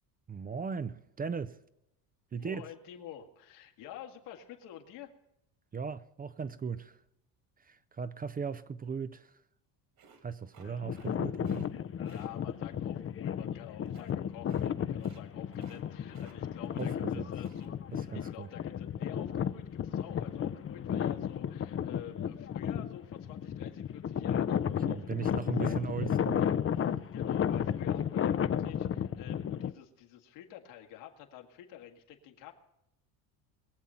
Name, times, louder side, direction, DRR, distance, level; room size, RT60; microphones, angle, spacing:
voice 1, 0.3-1.6 2.3-2.7 5.7-7.0 7.6-9.4 10.2-11.7 16.8-17.3 17.9-18.5 24.7-26.5, right 6 dB, 20° right, 0.5 m, -38 dB
voice 2, 2.4-5.1 12.0-25.8 27.1-32.5, left 10 dB, 75° left, 2.1 m, -49 dB
sound 1, 10.0-11.2 11.4-11.7 12.0-12.3 13.8-14.1 14.5-14.7 14.9-15.2 15.5-17.0 17.3-17.7, right 6 dB, 50° right, 2.4 m, -58 dB
sound 2, 10.7-29.7, left 9 dB, 30° left, 0.6 m, -33 dB
22.0 x 7.4 x 5.6 m
supercardioid pair, 85°, 46 cm